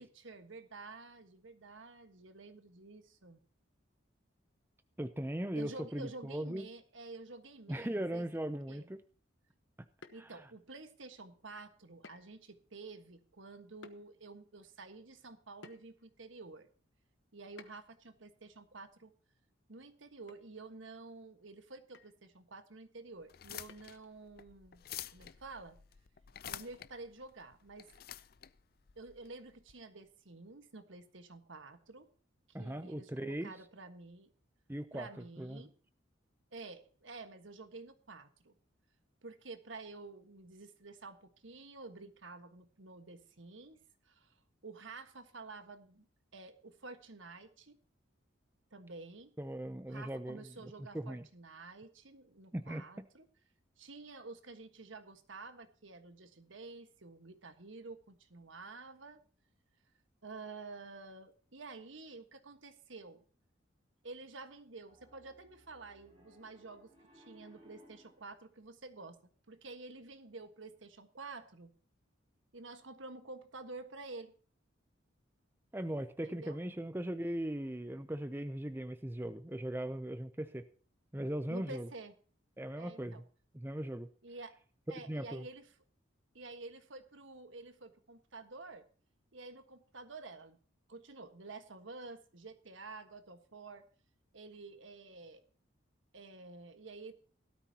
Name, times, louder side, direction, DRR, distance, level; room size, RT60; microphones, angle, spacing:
voice 1, 0.0-3.4 5.5-8.2 8.7-8.9 10.1-16.7 17.3-19.1 19.7-24.8 25.1-25.8 26.5-27.9 28.9-32.1 32.6-34.3 34.9-35.7 36.5-38.5 39.2-43.8 44.1-44.3 44.6-46.1 46.3-47.8 48.7-49.3 49.9-53.3 53.8-59.2 60.2-63.2 64.0-69.2 69.5-71.7 72.5-74.3 76.2-76.6 81.5-82.1 82.8-83.2 84.2-84.6 84.9-85.7 86.3-88.8 89.3-90.6 90.9-93.8 94.3-95.4 96.1-97.1, right 3 dB, 75° right, 8 dB, 1.5 m, -50 dB
voice 2, 5.0-6.7 7.7-9.0 10.2-10.5 32.5-33.6 34.7-35.1 35.4-35.7 49.4-51.3 52.5-53.1 75.7-80.7 81.1-81.9 82.6-83.2 83.5-84.1 85.1-85.5, right 1 dB, 10° right, 10 dB, 0.5 m, -39 dB
sound 1, 10.0-10.7 12.0-12.4 12.8-12.9 13.8-14.0 15.6-16.1 17.6-18.0 19.7-19.9 20.3-20.5 20.7-20.8 21.9-22.2 23.7-24.1, left 4 dB, 65° left, 1.2 m, -56 dB
sound 2, 23.2-29.7, left 11 dB, 50° left, 0.5 m, -49 dB
Piano, 64.9-68.3, equal, 30° right, 6.3 m, -62 dB
17.0 x 13.0 x 2.9 m, 0.41 s
head